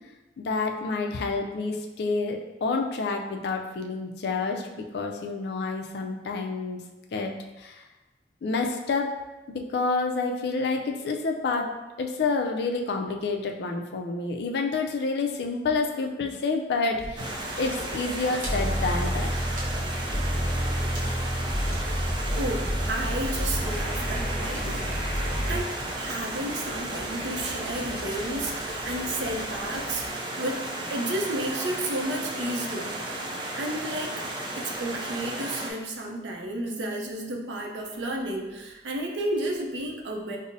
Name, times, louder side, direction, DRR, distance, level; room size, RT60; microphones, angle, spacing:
voice 1, 0.4-6.8 7.1-7.8 8.4-9.1 9.5-11.7 12.0-19.3, left 3 dB, 65° left, 2 dB, 0.4 m, -28 dB
sound 1, 16.9-30.1, equal, 40° right, 0.8 m, -44 dB
Stream, 17.2-35.7, right 1 dB, 25° right, 0.4 m, -34 dB
sound 2, 18.4-25.6, equal, 15° left, 0.9 m, -29 dB
voice 2, 22.3-34.2 34.6-40.4, right 1 dB, 80° right, 1 dB, 0.5 m, -32 dB
5.2 x 2.0 x 2.6 m, 1.1 s
head